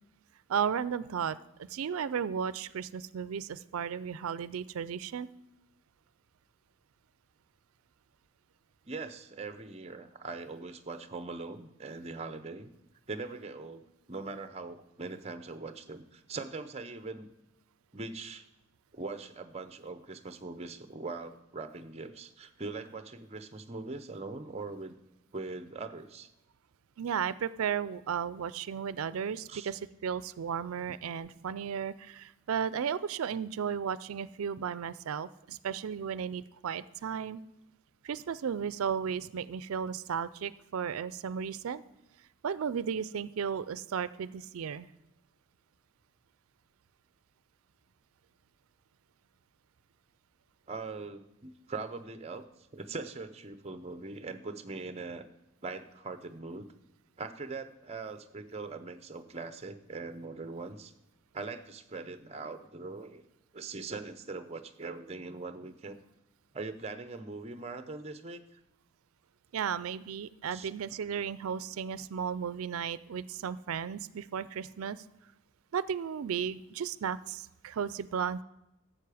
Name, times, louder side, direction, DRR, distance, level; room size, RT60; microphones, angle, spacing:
voice 1, 0.5-5.3 27.0-37.4 38.0-41.8 42.4-44.9 69.5-75.0 75.7-78.4, right 7 dB, 80° right, 17 dB, 0.4 m, -34 dB
voice 2, 8.9-12.7 13.1-17.3 17.9-18.5 18.9-25.0 25.3-26.3 29.5-29.7 50.7-52.4 52.7-55.3 55.6-56.7 57.2-60.9 61.3-63.2 63.5-66.0 66.5-68.4 70.5-70.7, right 3 dB, 30° right, 10 dB, 0.6 m, -41 dB
11.5 x 7.5 x 4.9 m, 0.93 s
head